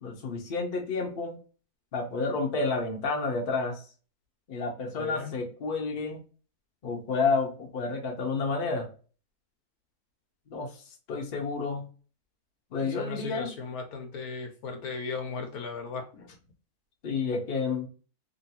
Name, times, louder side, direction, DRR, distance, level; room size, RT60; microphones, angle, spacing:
voice 1, 0.0-1.4 1.9-3.8 4.5-6.2 6.8-8.9 10.5-10.7 11.1-11.9 12.7-13.5 17.0-17.9, left 4 dB, 45° left, 1 dB, 0.8 m, -30 dB
voice 2, 5.0-5.4 12.8-16.3, left 4 dB, 75° left, 4 dB, 1.2 m, -37 dB
3.0 x 2.5 x 2.8 m, 0.39 s
omnidirectional pair, 1.6 m